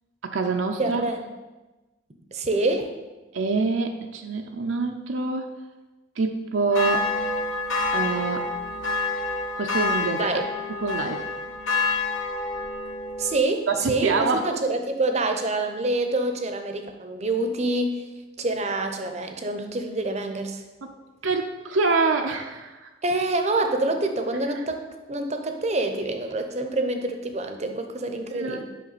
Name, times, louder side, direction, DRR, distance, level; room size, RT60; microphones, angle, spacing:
voice 1, 0.2-1.0 3.3-5.5 6.2-7.1 7.9-8.5 9.6-10.3 10.8-11.3 13.7-14.4 20.8-20.9 21.2-22.9 24.5-24.6 28.3-28.7, right 3 dB, 70° right, 4 dB, 0.6 m, -26 dB
voice 2, 0.8-1.2 2.3-2.9 10.2-10.5 13.2-18.0 18.4-20.6 23.0-24.8 25.1-28.7, right 2 dB, 35° right, 6 dB, 0.7 m, -26 dB
sound 1, 6.7-13.4, left 3 dB, 75° left, 1.2 m, -28 dB
8.4 x 5.6 x 4.1 m, 1.1 s
head